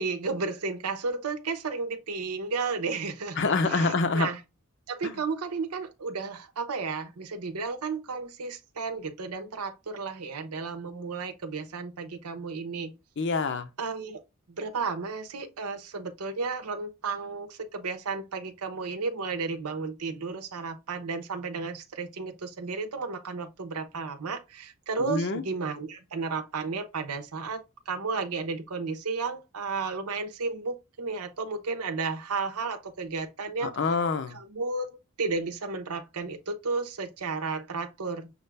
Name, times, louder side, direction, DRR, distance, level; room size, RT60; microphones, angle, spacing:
voice 1, 0.0-4.4 4.9-12.9 13.8-14.2 14.5-33.8 34.3-38.3, right 4 dB, 85° right, 0.8 m, -33 dB
voice 2, 3.4-4.3 5.0-5.1 13.2-13.7 25.0-25.4 33.6-34.4, left 3 dB, 50° left, 0.5 m, -26 dB
6.5 x 2.4 x 3.2 m
head